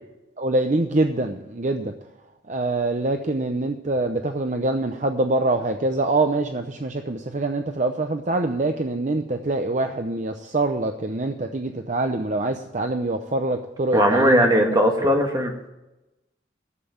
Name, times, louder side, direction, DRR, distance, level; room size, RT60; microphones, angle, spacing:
voice 1, 0.4-1.9 2.5-14.5 15.0-15.1, right 2 dB, 40° right, 6 dB, 0.7 m, -24 dB
voice 2, 13.9-15.7, equal, 20° right, 2 dB, 1.8 m, -19 dB
12.5 x 7.6 x 8.4 m, 0.98 s
head